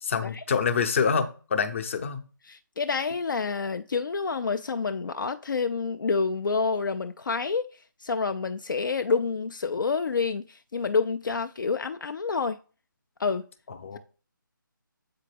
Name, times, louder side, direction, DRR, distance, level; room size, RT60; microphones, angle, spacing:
voice 1, 0.0-2.2 13.7-14.0, left 6 dB, 35° left, 0.7 m, -26 dB
voice 2, 2.5-12.6 13.2-13.5, left 4 dB, 70° left, 0.4 m, -28 dB
7.8 x 4.0 x 3.3 m
figure-of-eight pair, 150°, 11 cm